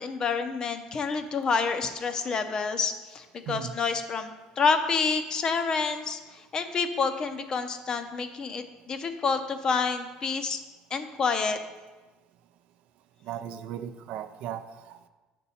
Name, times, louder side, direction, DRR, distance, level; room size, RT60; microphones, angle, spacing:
voice 1, 0.0-10.6 10.9-11.6, left 5 dB, 30° left, 8 dB, 0.5 m, -28 dB
voice 2, 13.2-15.1, right 10 dB, 60° right, 10 dB, 0.4 m, -37 dB
6.8 x 6.1 x 4.2 m, 1.2 s
cardioid pair, 150°, 3 cm